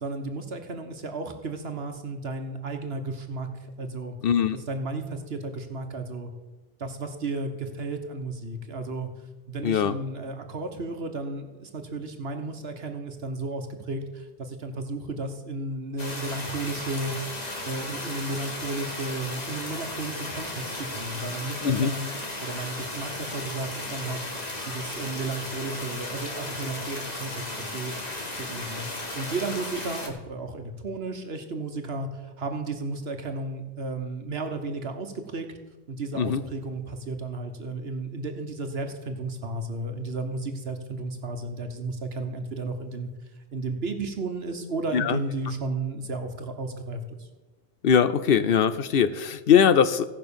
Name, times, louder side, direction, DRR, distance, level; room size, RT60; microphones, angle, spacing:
voice 1, 0.0-4.2 4.5-6.3 6.8-9.1 9.5-17.2 17.7-22.1 22.4-24.2 24.7-27.4 27.7-27.9 28.3-28.9 29.1-35.5 35.9-43.1 43.5-47.3, right 3 dB, 70° right, 6 dB, 1.3 m, -33 dB
voice 2, 4.2-4.6 9.6-9.9 21.6-21.9 36.1-36.4 44.9-45.2 47.8-50.0, left 8 dB, 65° left, 14 dB, 0.8 m, -21 dB
sound 1, 16.0-30.1, left 2 dB, 40° left, 1.9 m, -35 dB
16.5 x 5.6 x 7.0 m, 1.2 s
omnidirectional pair, 1.1 m